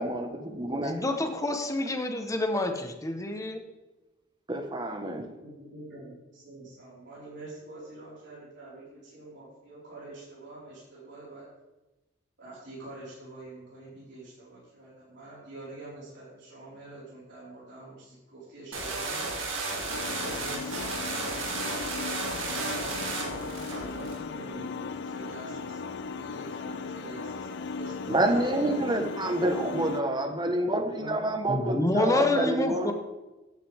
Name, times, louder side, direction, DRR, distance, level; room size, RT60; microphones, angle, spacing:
voice 1, 0.0-1.1 4.5-5.2 28.1-32.9, right 1 dB, 25° right, 5 dB, 1.3 m, -28 dB
voice 2, 0.8-3.6 31.5-32.9, left 2 dB, 15° left, 5 dB, 1.1 m, -28 dB
voice 3, 5.4-11.5 12.4-19.3 20.2-21.5 22.4-28.8 30.2-30.5 30.8-31.2 32.3-32.7, right 2 dB, 60° right, -8 dB, 4.7 m, -46 dB
sound 1, 18.7-24.2, right 3 dB, 80° right, 2.7 m, -33 dB
sound 2, 19.9-30.0, left 4 dB, 60° left, 0.5 m, -37 dB
14.5 x 9.4 x 3.6 m, 1.1 s
head